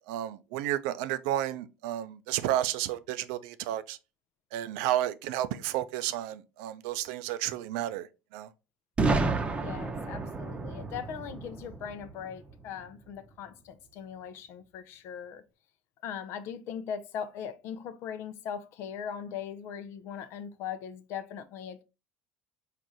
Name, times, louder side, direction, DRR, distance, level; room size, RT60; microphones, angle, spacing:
voice 1, 0.1-4.0 4.5-8.5, right 13 dB, 70° right, 0.4 m, -32 dB
Boom, 9.0-12.8, right 3 dB, 25° right, 0.7 m, -31 dB
voice 2, 9.5-15.4 16.0-21.8, left 8 dB, 60° left, 0.6 m, -40 dB
4.7 x 2.5 x 4.0 m
hypercardioid pair, 70°, 5 cm